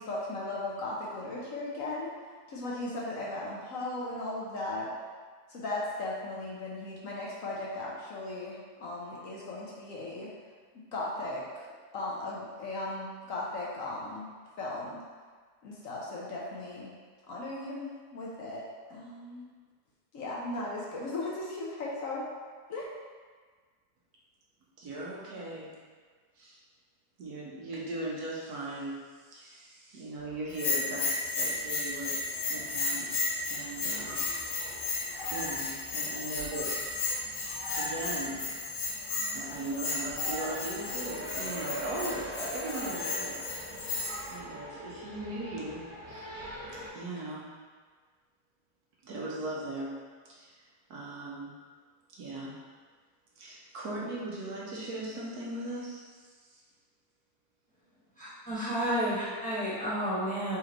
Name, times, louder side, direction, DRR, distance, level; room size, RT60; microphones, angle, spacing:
voice 1, 0.0-2.1 2.5-4.9 5.5-10.3 10.9-11.7 11.9-14.3 14.6-15.0 15.6-16.9 17.3-18.6 18.9-19.4 20.1-22.3 22.7-22.9, left 2 dB, 65° left, -5 dB, 1.0 m, -37 dB
voice 2, 24.8-25.7 26.4-26.6 27.2-29.0 29.3-32.2 32.5-33.2 33.5-34.3 35.3-36.8 37.7-38.4 39.3-43.4 44.3-46.2 46.7-47.5 49.0-50.0 50.2-50.5 50.9-51.5 52.1-52.6 53.4-56.6, right 2 dB, 75° right, -5 dB, 1.4 m, -39 dB
sound 1, 30.1-46.9, right 1 dB, 55° right, 1.6 m, -46 dB
Bell, 30.5-44.3, left 3 dB, 90° left, 1.6 m, -34 dB
sound 2, 33.6-44.7, equal, 25° left, 0.5 m, -45 dB
voice 3, 58.2-60.6, equal, 5° left, -11 dB, 1.3 m, -31 dB
4.3 x 3.1 x 3.7 m, 1.5 s
omnidirectional pair, 1.7 m